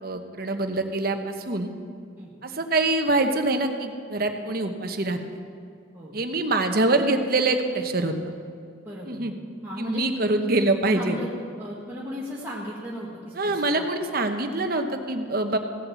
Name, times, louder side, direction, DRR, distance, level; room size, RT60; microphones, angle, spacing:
voice 1, 0.0-1.7 2.4-5.2 6.1-8.3 9.1-9.3 9.8-11.2 13.4-15.6, right 2 dB, 45° right, 6 dB, 0.9 m, -25 dB
voice 2, 8.8-9.2 9.6-10.1 10.9-11.3 11.6-13.9, equal, 10° right, -7 dB, 1.5 m, -36 dB
16.0 x 7.8 x 7.1 m, 2.4 s
head